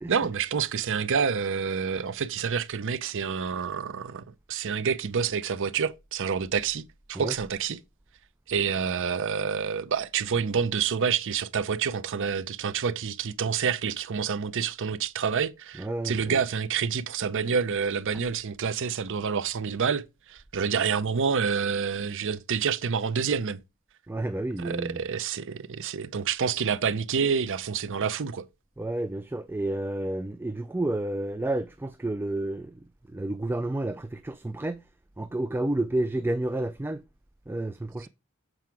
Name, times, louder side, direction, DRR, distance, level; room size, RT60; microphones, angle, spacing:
voice 1, 0.1-6.8 7.1-7.8 8.5-23.6 24.6-28.5, right 6 dB, 60° right, 0.6 m, -28 dB
voice 2, 15.7-16.4 24.1-25.0 28.8-32.7 33.1-34.8 35.2-37.0 37.5-38.1, right 1 dB, 10° right, 0.3 m, -30 dB
7.6 x 4.8 x 4.6 m
head